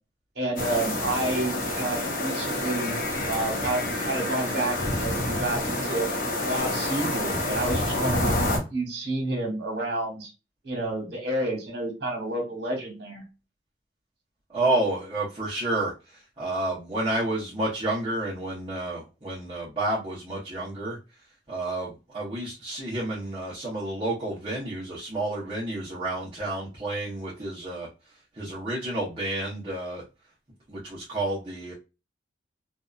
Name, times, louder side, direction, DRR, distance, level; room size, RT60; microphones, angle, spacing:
voice 1, 0.3-3.0 3.3-6.1 6.5-10.3 10.6-13.2, right 2 dB, 65° right, 1 dB, 1.3 m, -30 dB
sound 1, 0.6-8.6, left 1 dB, 55° left, 0.8 m, -28 dB
voice 2, 14.5-21.0 21.5-27.9 28.4-30.0 30.7-31.7, right 2 dB, 30° right, -7 dB, 0.8 m, -30 dB
2.6 x 2.3 x 2.3 m, 0.29 s
head